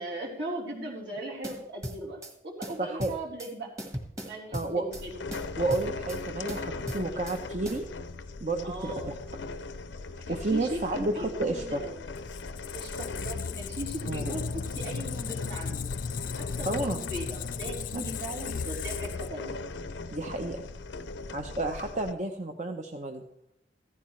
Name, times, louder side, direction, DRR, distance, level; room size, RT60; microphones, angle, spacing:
voice 1, 0.0-3.7 4.2-5.2 7.0-7.2 8.6-9.1 10.3-12.0 12.7-15.9 16.4-19.6, right 1 dB, 70° right, -2 dB, 4.0 m, -38 dB
sound 1, 1.4-2.3 2.6-3.5 3.8-5.0 5.3-6.2 6.5-7.4 7.6-7.8, equal, 20° right, 1.6 m, -38 dB
voice 2, 2.8-3.1 4.5-4.9 5.6-7.8 8.4-9.1 10.3-11.8 14.1-14.4 16.6-17.0 20.1-20.6 21.3-23.2, right 2 dB, 40° right, 3 dB, 0.8 m, -31 dB
sound 2, 4.9-22.1, left 3 dB, 80° left, 0.7 m, -40 dB
Squeak, 12.0-19.8, left 6 dB, 45° left, 0.4 m, -36 dB
15.5 x 14.0 x 3.2 m, 0.77 s
head